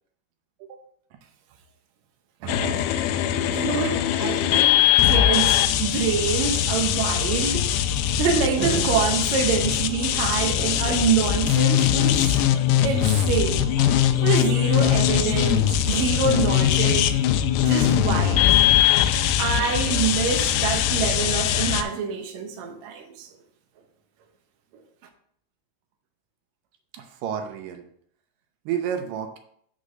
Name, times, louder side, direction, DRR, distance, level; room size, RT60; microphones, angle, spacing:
voice 1, 2.4-3.0 3.4-7.7 8.2-12.4 12.8-17.1 17.6-18.6 19.4-23.3 24.7-24.8, right 6 dB, 90° right, 1.5 m, -26 dB
sound 1, 2.5-21.8, left 11 dB, 85° left, 2.4 m, -21 dB
voice 2, 26.9-27.9 28.7-29.4, right 8 dB, 75° right, 2.1 m, -30 dB
6.3 x 4.1 x 6.4 m
omnidirectional pair, 4.5 m